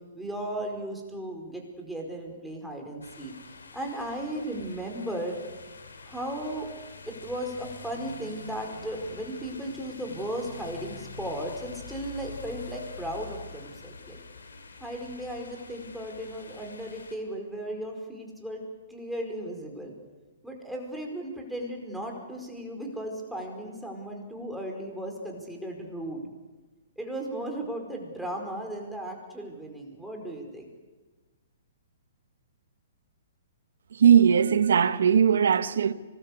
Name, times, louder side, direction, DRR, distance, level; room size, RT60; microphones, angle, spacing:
voice 1, 0.1-3.3 3.7-5.4 6.1-6.7 7.1-14.2 14.8-18.6 18.9-19.9 20.4-26.2 27.0-30.7, right 1 dB, ahead, 4.8 m, -36 dB
sound 1, 3.0-17.2, left 4 dB, 90° left, 3.2 m, -45 dB
voice 2, 34.0-35.9, right 8 dB, 75° right, 1.3 m, -19 dB
25.0 x 20.5 x 8.3 m
hypercardioid pair, 135°, 0 cm